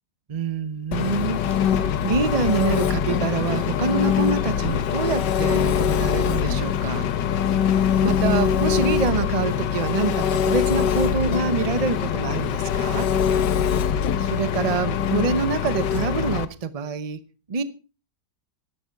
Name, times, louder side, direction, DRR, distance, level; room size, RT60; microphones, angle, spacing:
voice 1, 0.3-7.1 7.5-7.6 8.0-13.1 14.2-17.2 17.5-17.6, right 5 dB, 30° right, 0.7 m, -26 dB
Engine, 0.9-16.5, left 8 dB, 85° left, 1.5 m, -23 dB
13.0 x 11.0 x 4.7 m
omnidirectional pair, 1.8 m